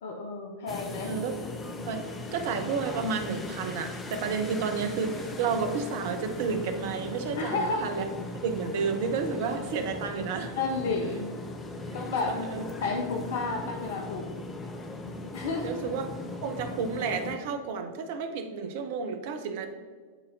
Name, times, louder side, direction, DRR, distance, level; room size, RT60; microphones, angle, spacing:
voice 1, 0.0-1.1 7.4-7.8 10.6-11.3 11.9-12.4 12.8-14.3 15.3-15.8, left 3 dB, 55° left, 2 dB, 0.6 m, -31 dB
sound 1, 0.7-17.4, left 2 dB, 20° left, 0.7 m, -39 dB
voice 2, 1.7-8.1 8.3-10.6 12.3-12.7 15.1-15.2 15.6-16.1 16.4-19.7, right 5 dB, 50° right, 6 dB, 0.7 m, -31 dB
10.0 x 4.1 x 2.7 m, 1.5 s
figure-of-eight pair, 90°, 0 cm